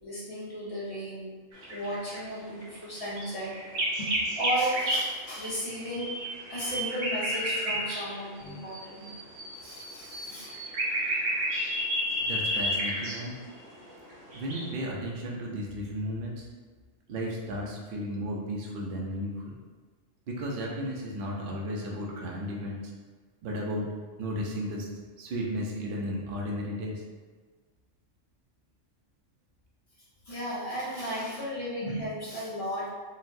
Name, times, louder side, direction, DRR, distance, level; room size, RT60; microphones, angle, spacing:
voice 1, 0.0-1.3 1.7-3.5 3.8-6.1 6.5-9.1 9.5-10.5 30.3-32.9, equal, 35° left, -8 dB, 0.8 m, -35 dB
sound 1, 1.5-2.2 2.8-8.2 8.5-14.7, equal, 80° right, 1.1 m, -31 dB
voice 2, 12.2-13.4 14.3-16.5 17.1-19.5 20.3-22.9 23.4-23.8 24.2-24.9 25.2-27.0, equal, 60° right, -2 dB, 0.6 m, -34 dB
3.9 x 2.0 x 2.5 m, 1.4 s
omnidirectional pair, 1.3 m